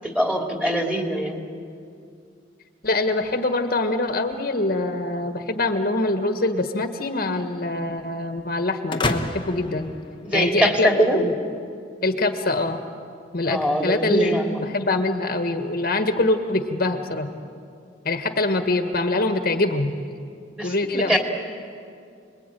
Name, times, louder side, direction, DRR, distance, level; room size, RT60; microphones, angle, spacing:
voice 1, 0.0-1.4 10.2-11.2 13.5-14.6 20.5-21.2, equal, 5° right, 2 dB, 2.7 m, -22 dB
voice 2, 2.8-9.9 10.3-11.3 12.0-12.8 13.3-17.3 18.0-20.0 20.6-21.2, left 2 dB, 55° left, 6 dB, 1.6 m, -24 dB
sound 1, 8.9-10.8, left 2 dB, 25° left, 1.2 m, -29 dB
29.5 x 21.5 x 9.2 m, 2.4 s
head